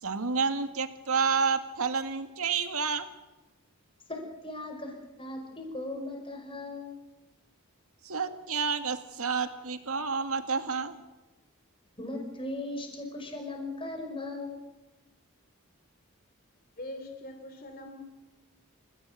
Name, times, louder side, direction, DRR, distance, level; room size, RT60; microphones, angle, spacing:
voice 1, 0.0-3.1 8.0-11.0, right 5 dB, 75° right, 7 dB, 2.1 m, -29 dB
voice 2, 4.1-7.0 12.0-14.6, left 2 dB, 25° left, 3 dB, 5.8 m, -38 dB
voice 3, 16.8-18.0, left 1 dB, 40° left, 5 dB, 3.3 m, -42 dB
28.0 x 16.5 x 8.3 m, 1.1 s
head